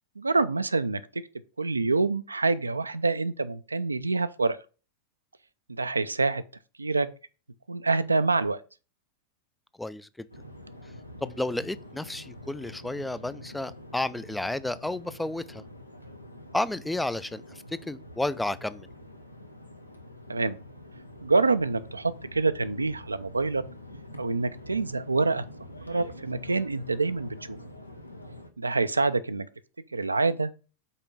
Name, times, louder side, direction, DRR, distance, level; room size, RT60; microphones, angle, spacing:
voice 1, 0.2-1.0 1.6-4.6 5.8-6.4 6.8-7.1 7.7-8.6 20.3-20.6 21.2-23.6 24.2-25.4 25.9-27.6 28.6-29.5 29.9-30.5, right 3 dB, 80° right, 0.4 m, -26 dB
voice 2, 9.8-10.3 11.2-15.6 16.5-18.9, left 2 dB, 5° left, 0.3 m, -32 dB
sound 1, 10.3-28.5, left 1 dB, 85° left, 0.8 m, -46 dB
5.5 x 4.4 x 5.5 m
figure-of-eight pair, 90°, 0 cm